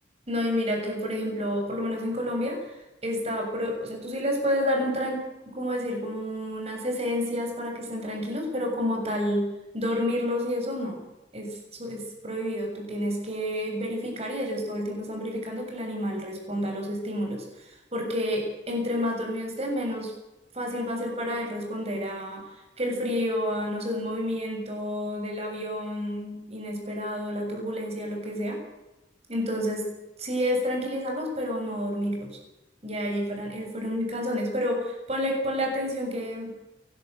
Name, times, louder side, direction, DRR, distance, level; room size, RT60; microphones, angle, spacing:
voice 1, 0.3-2.6 3.0-5.3 5.5-11.0 11.3-20.1 20.5-28.6 29.3-29.9 30.2-32.4 32.8-36.5, equal, 35° right, 1 dB, 7.3 m, -30 dB
28.5 x 12.5 x 8.1 m, 0.99 s
head